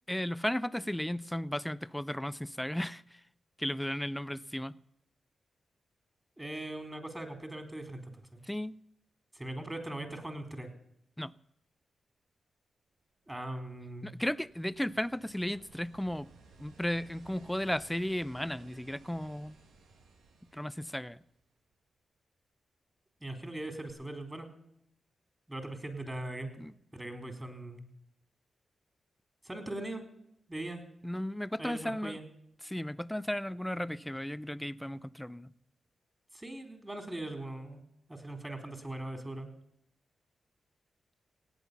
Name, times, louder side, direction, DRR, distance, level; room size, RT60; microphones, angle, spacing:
voice 1, 0.1-3.2 3.6-4.8 8.4-8.8 11.2-11.3 14.0-16.3 16.6-19.5 20.5-21.2 26.6-26.7 31.0-32.2 32.6-35.5, left 1 dB, 10° left, 18 dB, 0.6 m, -35 dB
voice 2, 6.4-8.4 9.3-10.7 13.3-14.1 23.2-24.5 25.5-26.5 26.9-27.9 29.4-30.0 30.5-30.8 31.6-32.2 36.3-37.8 38.1-39.5, right 1 dB, 20° right, 5 dB, 4.2 m, -40 dB
sound 1, 13.3-21.7 23.9-24.0, right 3 dB, 85° right, 1.7 m, -59 dB
17.5 x 9.0 x 7.0 m, 0.77 s
supercardioid pair, 45°, 0 cm